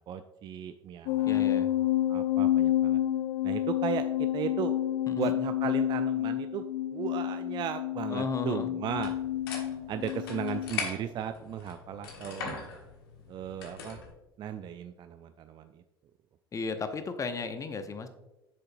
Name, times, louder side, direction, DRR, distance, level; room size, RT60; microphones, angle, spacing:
voice 1, 0.0-1.5 2.1-3.0 3.4-4.8 5.2-6.6 6.9-9.1 9.9-12.6 13.3-14.0 14.4-15.8, right 8 dB, 35° right, 9 dB, 0.4 m, -36 dB
sound 1, 1.1-10.7, left 12 dB, 55° left, 0.4 m, -29 dB
voice 2, 1.3-1.7 5.1-5.3 8.1-8.7 16.5-18.1, left 4 dB, 25° left, 9 dB, 0.8 m, -35 dB
sound 2, 8.9-14.1, left 5 dB, 70° left, 1.3 m, -41 dB
8.6 x 6.6 x 2.6 m, 1.0 s
figure-of-eight pair, 65°, 12 cm